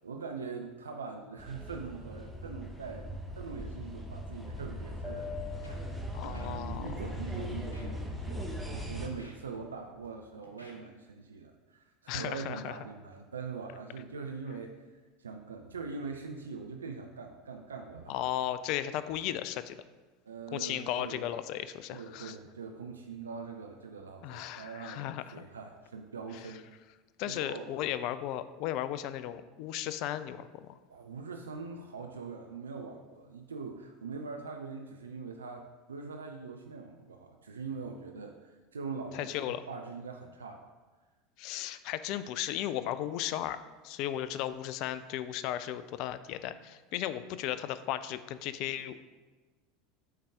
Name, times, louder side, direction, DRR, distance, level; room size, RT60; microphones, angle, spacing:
voice 1, 0.0-5.4 5.8-5.9 6.2-14.8 15.2-18.2 20.3-21.3 21.9-26.6 27.2-27.7 30.9-40.7, right 4 dB, 75° right, 4 dB, 0.4 m, -42 dB
sound 1, 1.4-9.1, equal, 5° left, 0.9 m, -39 dB
Scratching (performance technique), 5.6-5.8 6.1-6.8 7.0-7.2 7.7-7.9 8.4-8.6 9.0-10.1 10.4-10.7, equal, 90° left, 0.8 m, -55 dB
voice 2, 6.1-6.9 12.1-12.8 18.1-19.8 20.5-22.3 24.2-25.4 27.2-30.7 39.1-39.6 41.4-43.6 43.8-49.0, left 12 dB, 50° left, 13 dB, 0.3 m, -35 dB
8.6 x 3.6 x 3.5 m, 1.3 s
figure-of-eight pair, 75°, 0 cm